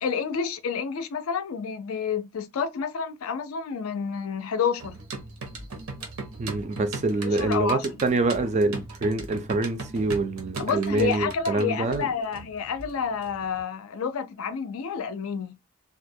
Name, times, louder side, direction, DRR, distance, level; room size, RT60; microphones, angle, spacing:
voice 1, 0.0-5.0 7.2-7.9 10.6-15.6, left 6 dB, 80° left, 0.4 m, -29 dB
sound 1, 4.8-13.6, right 3 dB, 85° right, 0.8 m, -39 dB
voice 2, 6.4-12.1, right 3 dB, 30° right, 0.3 m, -26 dB
2.3 x 2.1 x 2.6 m
head